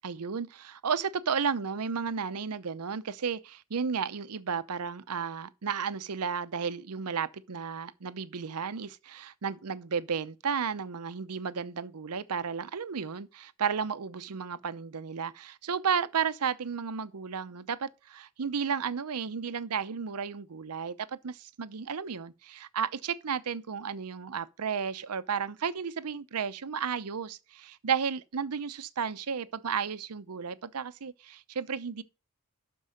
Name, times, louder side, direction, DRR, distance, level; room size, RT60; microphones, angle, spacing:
voice 1, 0.0-32.0, right 6 dB, 85° right, 0.7 m, -33 dB
12.0 x 4.6 x 5.2 m
head